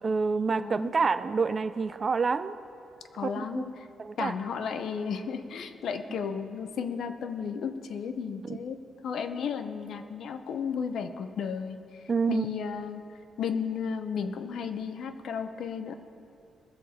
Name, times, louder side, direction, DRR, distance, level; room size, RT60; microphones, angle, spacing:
voice 1, 0.0-2.5 3.2-3.6 4.0-4.3 8.4-8.6 12.1-12.5, right 4 dB, 35° right, 12 dB, 0.4 m, -27 dB
voice 2, 0.5-1.0 3.1-3.9 4.2-13.0 13.4-15.9, left 6 dB, 70° left, 9 dB, 0.7 m, -34 dB
20.5 x 7.5 x 4.3 m, 2.6 s
cardioid pair, 120°, 0 cm